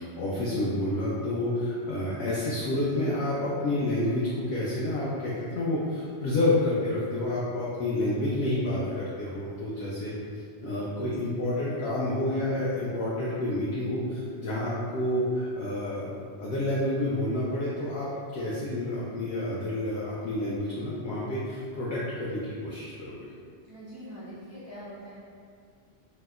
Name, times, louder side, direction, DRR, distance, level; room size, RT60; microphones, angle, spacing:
voice 1, 0.0-18.1 18.3-23.3, left 1 dB, 70° left, -7 dB, 0.8 m, -29 dB
voice 2, 23.7-25.1, equal, 25° right, -11 dB, 0.3 m, -44 dB
2.8 x 2.1 x 3.4 m, 2.2 s
omnidirectional pair, 1.1 m